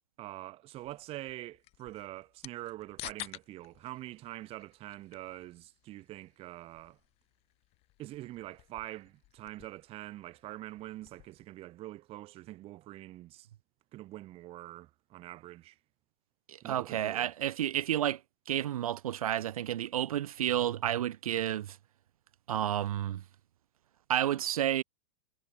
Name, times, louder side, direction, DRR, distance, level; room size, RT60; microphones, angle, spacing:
voice 1, 0.2-7.0 8.0-13.5 13.9-15.8 16.6-17.3, right 16 dB, 30° right, 1.0 m, -45 dB
sound 1, 0.8-11.4, left 19 dB, 30° left, 0.8 m, -52 dB
voice 2, 16.5-18.2 18.5-21.8 22.5-23.2 24.1-24.8, right 11 dB, 70° right, 0.9 m, -31 dB
hypercardioid pair, 110°, 19 cm